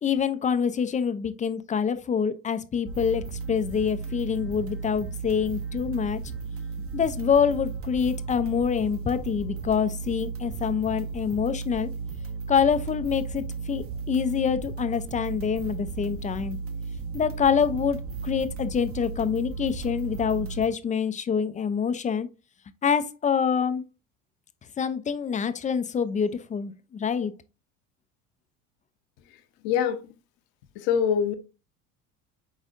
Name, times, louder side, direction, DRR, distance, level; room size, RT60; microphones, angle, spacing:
voice 1, 0.0-6.2 6.9-11.9 12.5-16.6 17.1-22.3 22.8-23.8 24.8-27.3, left 7 dB, 20° left, 0.4 m, -26 dB
sound 1, 2.9-20.7, right 5 dB, 35° right, 0.8 m, -35 dB
voice 2, 29.6-30.0 30.9-31.3, left 8 dB, 65° left, 0.8 m, -23 dB
5.1 x 4.0 x 2.5 m
hypercardioid pair, 75°, 40 cm